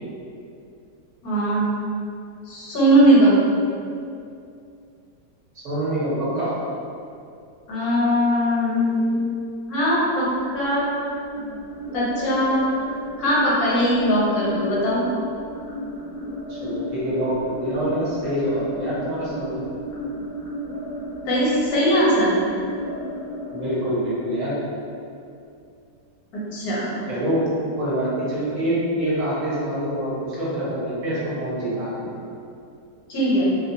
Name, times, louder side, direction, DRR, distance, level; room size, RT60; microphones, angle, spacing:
voice 1, 1.2-1.7 2.5-3.4 7.7-9.2 9.7-10.3 10.5-10.9 11.9-15.1 21.3-22.4 26.3-26.8 33.1-33.5, equal, 70° left, -7 dB, 1.2 m, -20 dB
voice 2, 5.6-6.5 16.5-19.7 23.5-24.5 27.1-27.5 27.8-32.1, right 1 dB, 60° right, -8 dB, 1.0 m, -25 dB
sound 1, 10.2-25.2, left 1 dB, 35° left, 0.6 m, -34 dB
2.7 x 2.1 x 2.5 m, 2.5 s
omnidirectional pair, 1.7 m